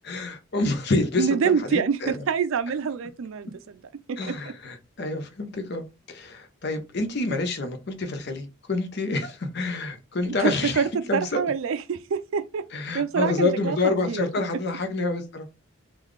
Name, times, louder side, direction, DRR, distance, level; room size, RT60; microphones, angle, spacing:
voice 1, 0.0-2.2 4.2-11.4 12.7-15.5, left 2 dB, 55° left, 0.6 m, -28 dB
voice 2, 1.2-3.5 4.1-4.3 10.2-12.7 12.9-13.8 14.1-14.3, right 6 dB, 70° right, 0.4 m, -26 dB
3.8 x 2.3 x 3.2 m
head